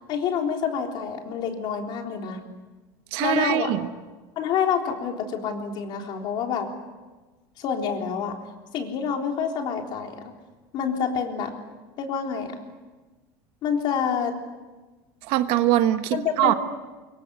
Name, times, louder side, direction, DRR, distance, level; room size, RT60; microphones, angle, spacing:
voice 1, 0.1-2.4 3.2-3.8 4.4-6.7 7.6-8.4 8.7-10.3 10.7-11.5 12.0-12.6 13.6-14.4 16.1-16.6, left 7 dB, 45° left, 3 dB, 3.8 m, -27 dB
voice 2, 3.1-3.9 15.2-16.5, right 13 dB, 55° right, 10 dB, 1.3 m, -22 dB
25.0 x 23.5 x 8.2 m, 1.3 s
cardioid pair, 160°, 11 cm